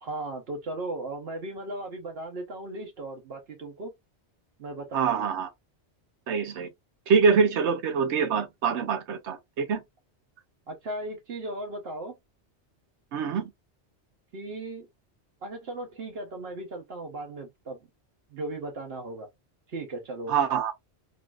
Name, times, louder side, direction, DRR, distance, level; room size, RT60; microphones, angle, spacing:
voice 1, 0.0-3.9 4.6-5.3 10.7-12.2 14.3-14.9 15.4-17.8 18.3-19.3 19.7-20.3, right 2 dB, 65° right, 0.9 m, -37 dB
voice 2, 4.9-5.5 6.3-6.7 7.1-9.8 13.1-13.5 20.3-20.7, right 6 dB, 90° right, 1.0 m, -24 dB
3.7 x 2.5 x 2.3 m
omnidirectional pair, 1.2 m